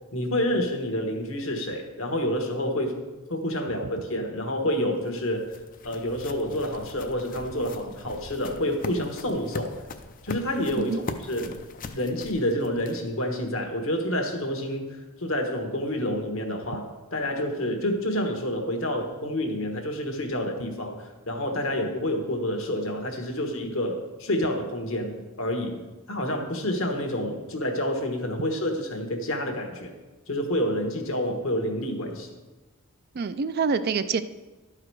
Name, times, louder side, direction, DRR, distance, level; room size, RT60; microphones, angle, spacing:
voice 1, 0.1-2.9 3.3-5.5 5.8-9.7 10.2-11.6 11.9-29.9 30.3-32.3, left 1 dB, 65° left, 4 dB, 1.3 m, -28 dB
sound 1, 4.7-13.2, left 3 dB, 40° left, 0.5 m, -41 dB
voice 2, 33.1-34.2, right 5 dB, 45° right, 12 dB, 0.4 m, -26 dB
12.0 x 4.9 x 4.6 m, 1.2 s
head